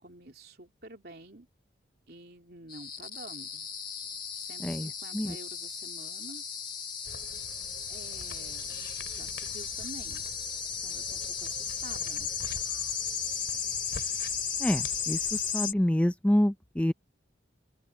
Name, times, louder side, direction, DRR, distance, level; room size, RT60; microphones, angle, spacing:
voice 1, 0.0-1.5 2.1-3.7 4.4-6.4 7.9-10.2 10.8-12.3, right 2 dB, 55° right, 3.4 m, -49 dB
sound 1, 2.7-15.7, left 7 dB, 25° left, 1.7 m, -35 dB
sound 2, 7.0-15.5, left 3 dB, 65° left, 4.2 m, -47 dB
voice 2, 14.6-16.9, left 1 dB, 5° left, 0.4 m, -27 dB
open air
head